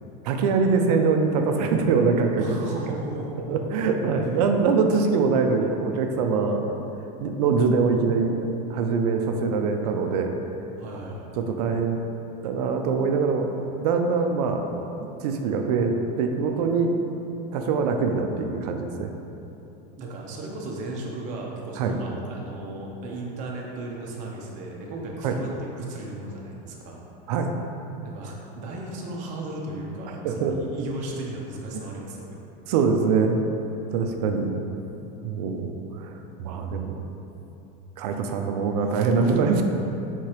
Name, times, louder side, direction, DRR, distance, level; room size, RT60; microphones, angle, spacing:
voice 1, 0.2-2.5 3.5-6.8 7.2-8.4 8.7-10.3 11.4-12.0 12.4-13.5 13.8-14.7 15.0-17.0 17.5-19.1 21.8-21.9 25.2-25.4 27.3-27.6 30.2-30.6 31.7-31.9 32.7-33.4 33.9-34.5 35.2-37.0 38.0-39.6, right 5 dB, 75° right, 4 dB, 0.5 m, -23 dB
voice 2, 2.4-3.4 10.8-11.4 20.0-27.0 28.0-32.4, right 2 dB, 40° right, -2 dB, 0.7 m, -35 dB
4.8 x 3.7 x 2.9 m, 3.0 s
supercardioid pair, 160°, 20 cm